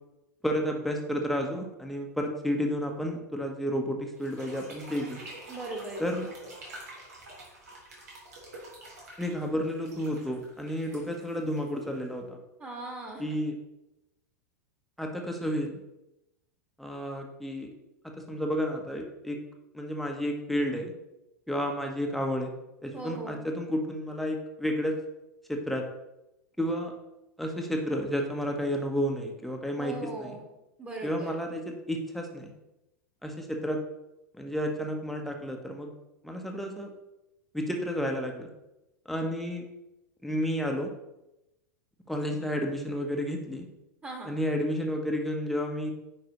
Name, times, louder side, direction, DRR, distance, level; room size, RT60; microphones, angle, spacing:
voice 1, 0.4-5.2 6.0-6.3 9.2-12.4 13.2-13.5 15.0-15.8 16.8-17.7 18.2-19.4 19.7-20.9 21.5-22.5 22.8-25.0 25.5-25.8 26.6-26.9 27.4-30.4 31.0-32.5 33.2-33.8 34.3-35.9 36.2-36.9 37.5-38.5 39.0-39.6 40.2-40.9 42.1-43.7 44.2-45.9, equal, ahead, 2 dB, 1.2 m, -31 dB
sound 1, 4.2-12.2, right 1 dB, 70° right, 2.7 m, -47 dB
voice 2, 5.5-6.1 12.6-13.2 22.9-23.5 29.8-30.4 30.8-31.3 44.0-44.3, right 2 dB, 15° right, 0 dB, 1.9 m, -39 dB
9.3 x 5.3 x 3.1 m, 0.92 s
figure-of-eight pair, 90°, 9 cm